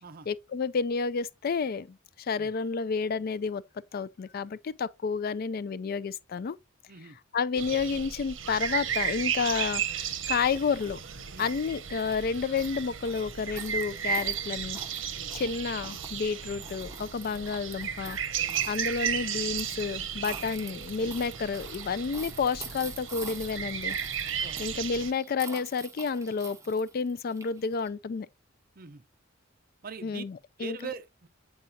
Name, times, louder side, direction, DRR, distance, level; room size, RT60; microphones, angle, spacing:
voice 1, 0.3-3.6 3.9-6.6 7.3-11.0 11.4-14.8 15.3-18.2 18.7-24.0 24.6-28.3 30.0-30.8, left 5 dB, 50° left, 0.4 m, -30 dB
voice 2, 6.9-7.2 11.3-11.5 15.2-15.3 18.4-18.6 20.3-20.4 24.4-24.7 28.8-29.0 29.8-30.2 30.6-31.3, right 5 dB, 50° right, 0.6 m, -42 dB
sound 1, 7.6-25.1, right 8 dB, 75° right, 0.9 m, -34 dB
sound 2, 10.2-27.9, right 4 dB, 15° right, 0.8 m, -47 dB
8.3 x 4.8 x 2.8 m
head